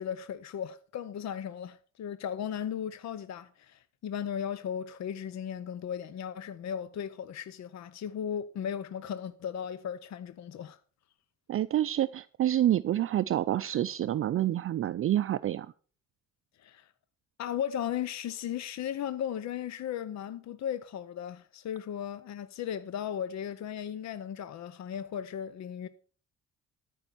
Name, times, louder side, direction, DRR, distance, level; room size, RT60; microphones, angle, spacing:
voice 1, 0.0-10.8 16.6-16.9 17.4-25.9, left 9 dB, 65° left, 0.8 m, -36 dB
voice 2, 11.5-15.7, right 12 dB, 45° right, 0.5 m, -28 dB
13.5 x 5.4 x 6.9 m
cardioid pair, 90°, 30 cm